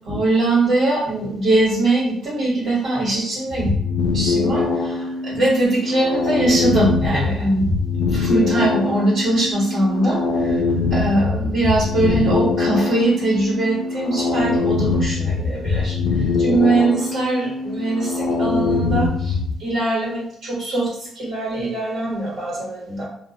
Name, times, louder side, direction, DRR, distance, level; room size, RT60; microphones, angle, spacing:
voice 1, 0.1-3.7 4.1-4.6 5.3-7.6 8.1-10.2 10.9-15.9 16.4-18.1 18.4-19.1 19.6-20.9 21.2-23.0, right 2 dB, 80° right, -8 dB, 1.3 m, -21 dB
sound 1, 3.5-19.5, left 3 dB, 75° left, 0.3 m, -22 dB
2.5 x 2.1 x 2.6 m, 0.69 s
cardioid pair, 90°, 0 cm